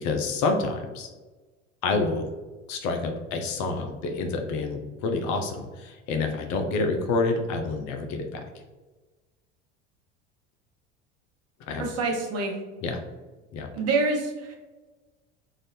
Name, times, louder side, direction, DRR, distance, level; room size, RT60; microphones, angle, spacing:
voice 1, 0.0-1.1 1.8-2.2 2.7-8.4 11.7-11.8 12.8-13.0 13.5-13.7, left 3 dB, 50° left, 5 dB, 0.7 m, -28 dB
voice 2, 11.8-12.6 13.7-14.5, right 3 dB, 40° right, 1 dB, 1.1 m, -26 dB
3.9 x 2.6 x 3.3 m, 1.2 s
hypercardioid pair, 75°, 37 cm